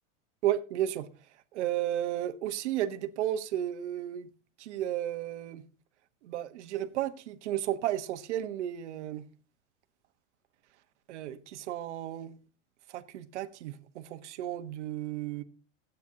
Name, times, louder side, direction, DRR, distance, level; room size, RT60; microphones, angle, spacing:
voice 1, 0.4-1.1 1.5-4.3 4.6-5.6 6.2-9.2 11.1-12.4 12.9-15.4, right 12 dB, 60° right, 1.2 m, -33 dB
16.0 x 9.1 x 2.8 m
supercardioid pair, 170°, 40 cm